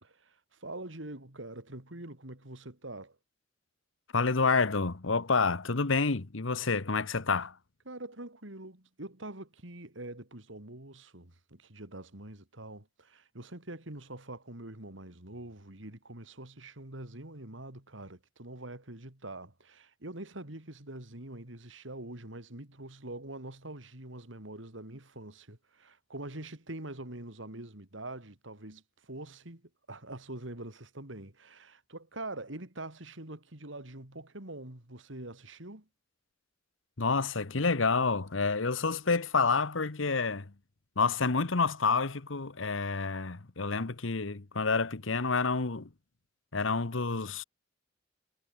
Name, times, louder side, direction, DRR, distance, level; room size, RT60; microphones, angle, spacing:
voice 1, 0.0-3.2 7.9-29.6 29.9-35.9, right 2 dB, 75° right, 3.6 m, -44 dB
voice 2, 4.1-7.5 37.0-40.5 41.0-45.9 46.5-47.4, left 4 dB, 90° left, 1.3 m, -28 dB
head